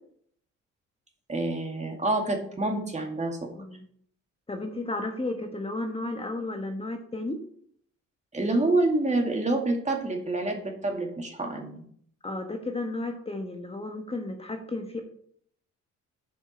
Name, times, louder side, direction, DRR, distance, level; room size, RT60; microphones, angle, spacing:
voice 1, 1.3-3.5 8.3-11.8, right 2 dB, 25° right, 2 dB, 2.3 m, -27 dB
voice 2, 4.5-7.4 12.2-15.0, left 2 dB, 20° left, 3 dB, 1.3 m, -33 dB
7.6 x 5.2 x 6.3 m, 0.62 s
cardioid pair, 90°, 30 cm